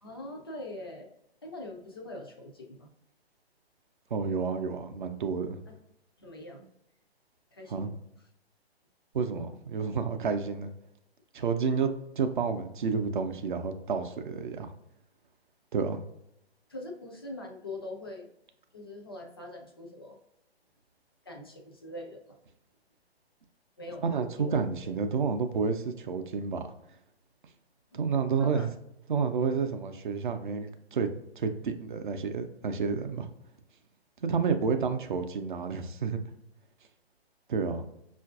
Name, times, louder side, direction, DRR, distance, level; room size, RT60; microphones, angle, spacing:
voice 1, 0.0-1.1 1.4-2.9 5.7-5.8 6.2-6.7 7.5-8.0 16.7-18.3 18.7-20.2 21.3-22.4 23.8-24.9 27.9-28.0 28.4-28.7, left 2 dB, 25° left, 1 dB, 0.3 m, -43 dB
voice 2, 4.1-5.6 7.7-7.9 9.1-10.7 11.3-14.7 15.7-16.0 24.0-26.7 27.9-28.7 29.1-31.1 31.4-33.3 34.2-36.2 37.5-37.9, right 5 dB, 50° right, 7 dB, 0.5 m, -30 dB
5.6 x 2.5 x 2.3 m, 0.79 s
figure-of-eight pair, 130°, 32 cm